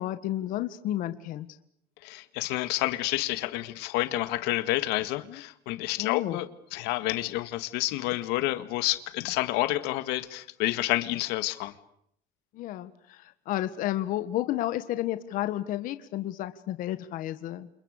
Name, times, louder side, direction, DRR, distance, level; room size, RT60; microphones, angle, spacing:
voice 1, 0.0-1.5 5.3-5.4 6.0-6.4 12.5-17.7, left 14 dB, 50° left, 11 dB, 1.7 m, -31 dB
voice 2, 2.0-11.7, left 17 dB, 70° left, 12 dB, 1.9 m, -29 dB
29.5 x 28.5 x 6.7 m, 0.72 s
cardioid pair, 165°, 17 cm